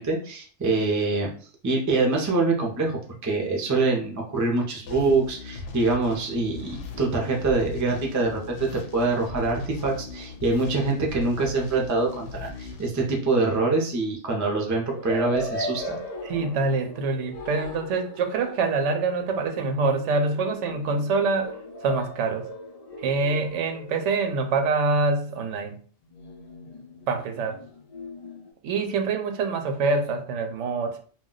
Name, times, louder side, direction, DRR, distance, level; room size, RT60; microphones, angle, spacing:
voice 1, 0.0-1.3 1.6-16.0, right 3 dB, 25° right, -1 dB, 0.4 m, -25 dB
sound 1, 4.9-13.7, left 4 dB, 80° left, 0.9 m, -38 dB
sound 2, 14.9-24.4 26.1-28.5, left 1 dB, 60° left, 0.4 m, -38 dB
voice 2, 16.2-21.5 21.8-22.5 23.0-25.8 27.1-27.6 28.6-31.0, right 3 dB, 85° right, 6 dB, 0.9 m, -25 dB
2.2 x 2.2 x 3.7 m, 0.43 s
omnidirectional pair, 1.2 m